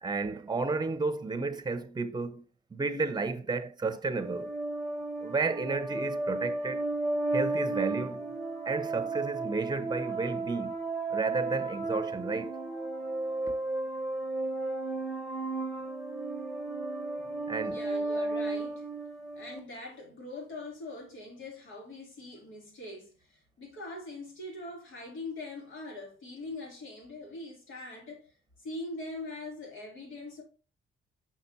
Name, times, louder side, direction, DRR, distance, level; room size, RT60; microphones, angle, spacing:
voice 1, 0.0-2.4 2.7-4.5 5.2-6.8 7.3-8.3 8.7-10.8 11.1-12.6 17.5-17.8, right 3 dB, 20° right, 0.8 m, -32 dB
sound 1, 4.2-19.6, right 2 dB, 5° left, 1.3 m, -34 dB
voice 2, 17.6-18.9 19.3-28.3 28.6-30.4, left 2 dB, 75° left, 3.1 m, -42 dB
6.0 x 5.9 x 2.7 m
cardioid pair, 90°, 20 cm